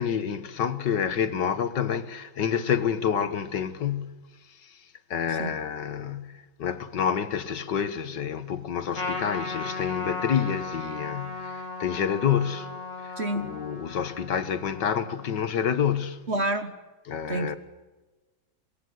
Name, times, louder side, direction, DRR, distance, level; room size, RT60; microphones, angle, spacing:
voice 1, 0.0-4.2 4.6-4.8 5.1-12.8 13.0-16.3 17.1-17.6, left 8 dB, 65° left, 1.9 m, -28 dB
Trumpet, 8.9-15.6, left 3 dB, 40° left, 3.4 m, -36 dB
voice 2, 13.2-13.5 16.3-16.7 17.3-17.6, right 1 dB, 40° right, 1.3 m, -28 dB
24.5 x 22.0 x 8.0 m
omnidirectional pair, 2.1 m